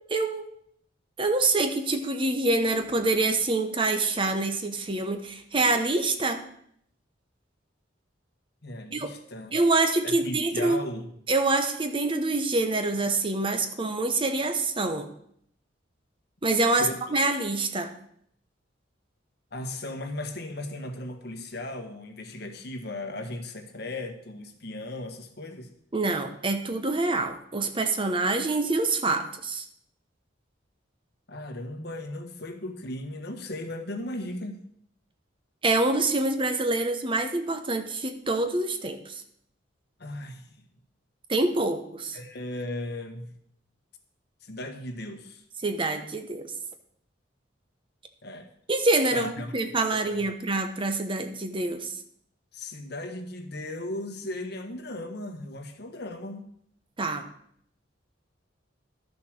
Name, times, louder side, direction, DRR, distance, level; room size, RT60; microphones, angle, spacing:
voice 1, 0.1-0.5 1.2-6.4 8.9-9.1 9.5-10.8 11.3-15.1 16.4-17.9 25.9-29.6 35.6-39.2 41.3-42.2 45.6-46.5 48.7-52.0 57.0-57.3, right 2 dB, 30° right, 7 dB, 1.0 m, -26 dB
voice 2, 8.6-9.5 10.0-11.1 16.7-17.0 19.5-25.7 31.3-34.6 40.0-40.6 42.1-43.4 44.4-45.4 48.2-48.5 49.1-49.5 49.9-50.3 52.5-56.4, left 1 dB, 60° left, 5 dB, 1.4 m, -37 dB
12.0 x 6.8 x 6.5 m, 0.68 s
head